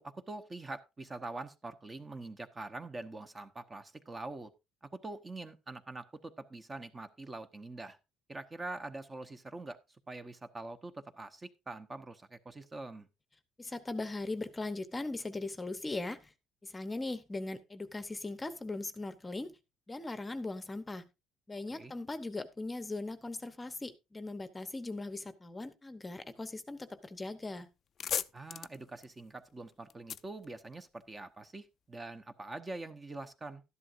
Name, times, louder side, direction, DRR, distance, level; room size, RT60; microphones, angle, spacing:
voice 1, 0.0-4.5 4.8-8.0 8.3-9.8 10.1-13.1 21.7-21.9 28.3-33.6, right 2 dB, 20° right, 0.9 m, -44 dB
voice 2, 13.6-16.3 16.6-19.6 19.9-21.1 21.5-27.7, left 2 dB, 15° left, 0.9 m, -39 dB
sound 1, 27.4-27.5 27.7-31.3, left 8 dB, 40° left, 0.4 m, -40 dB
12.5 x 11.0 x 2.6 m
cardioid pair, 135°, 0 cm